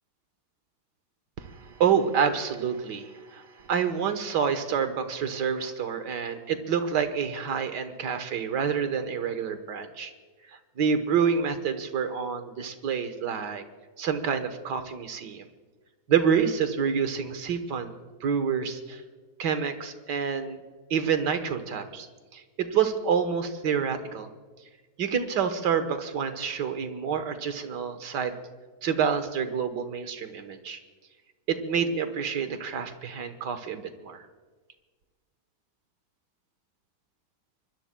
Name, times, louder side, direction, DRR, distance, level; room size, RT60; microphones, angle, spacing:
voice 1, 1.4-10.1 10.5-13.6 14.0-15.5 16.1-17.9 18.2-19.0 19.4-20.6 20.9-22.1 22.3-24.3 25.0-28.3 28.8-30.8 31.5-34.2, right 7 dB, 80° right, 9 dB, 1.8 m, -28 dB
24.5 x 21.0 x 2.2 m, 1.4 s
omnidirectional pair, 1.8 m